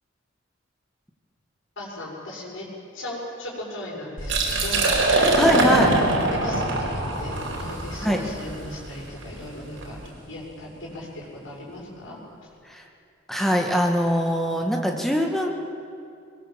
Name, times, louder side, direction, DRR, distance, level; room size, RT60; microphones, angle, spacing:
voice 1, 1.8-2.7 2.9-5.7 6.3-12.2, left 1 dB, 85° left, -4 dB, 6.9 m, -37 dB
Liquid, 4.2-9.9, right 2 dB, 90° right, 5.0 m, -23 dB
voice 2, 5.4-6.0 8.0-8.2 12.7-12.8 13.3-15.5, equal, ahead, 1 dB, 1.9 m, -22 dB
22.0 x 22.0 x 7.7 m, 2.4 s
head